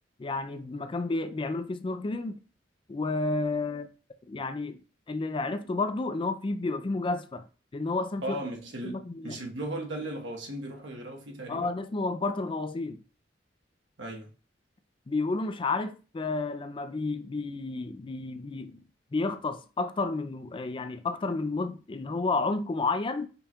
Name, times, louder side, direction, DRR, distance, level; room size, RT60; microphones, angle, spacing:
voice 1, 0.2-2.4 2.9-3.9 4.3-4.8 5.1-7.4 7.7-8.4 8.8-9.4 11.5-13.0 15.1-18.8 19.1-23.3, left 3 dB, 30° left, 0.4 m, -31 dB
voice 2, 8.2-11.7 14.0-14.3, right 1 dB, 75° right, 1.2 m, -37 dB
5.2 x 2.3 x 4.3 m
head